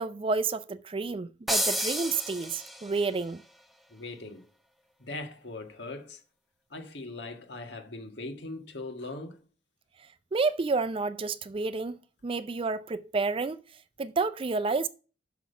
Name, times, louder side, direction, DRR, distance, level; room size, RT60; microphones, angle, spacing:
voice 1, 0.0-3.4 10.3-12.0 12.2-13.6 14.0-14.9, right 4 dB, 30° right, 0.4 m, -30 dB
sound 1, 1.5-3.1, equal, ahead, 0.8 m, -31 dB
voice 2, 3.9-4.5 5.0-6.2 6.7-9.4, left 2 dB, 65° left, 1.7 m, -40 dB
6.2 x 6.0 x 6.8 m
head